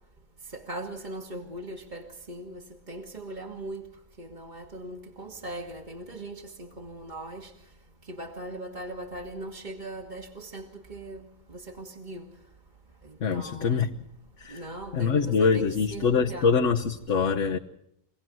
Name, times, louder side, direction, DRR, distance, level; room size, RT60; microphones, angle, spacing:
voice 1, 0.4-3.9 4.2-7.5 8.1-12.2 13.0-13.9 14.5-16.5, right 1 dB, 35° right, 0 dB, 1.8 m, -40 dB
voice 2, 13.2-13.9 14.4-14.6 14.9-17.6, left 5 dB, 65° left, 2 dB, 1.4 m, -24 dB
25.5 x 17.5 x 7.7 m, 0.80 s
omnidirectional pair, 1.4 m